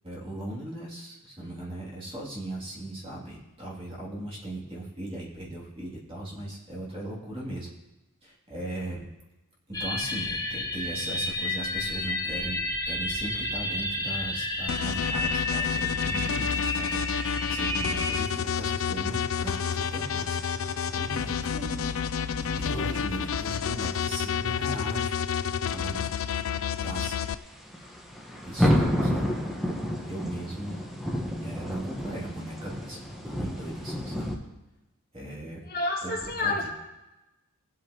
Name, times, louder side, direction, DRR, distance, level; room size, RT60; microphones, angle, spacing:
voice 1, 0.0-7.7 8.2-9.0 9.7-16.9 17.4-20.4 20.8-21.5 21.8-25.1 25.7-26.1 26.8-27.2 28.4-29.3 30.0-30.8 31.4-34.3 35.1-35.6 36.0-36.7, right 1 dB, 25° right, -4 dB, 2.7 m, -38 dB
sound 1, 9.7-18.2, left 2 dB, 15° left, 1.0 m, -31 dB
sound 2, 14.7-27.3, left 7 dB, 65° left, 0.4 m, -30 dB
sound 3, 15.1-34.4, equal, ahead, 1.2 m, -34 dB
voice 2, 21.5-21.9 22.7-22.8 35.7-36.7, left 2 dB, 45° left, -1 dB, 1.8 m, -30 dB
19.5 x 8.3 x 3.0 m, 1.0 s
head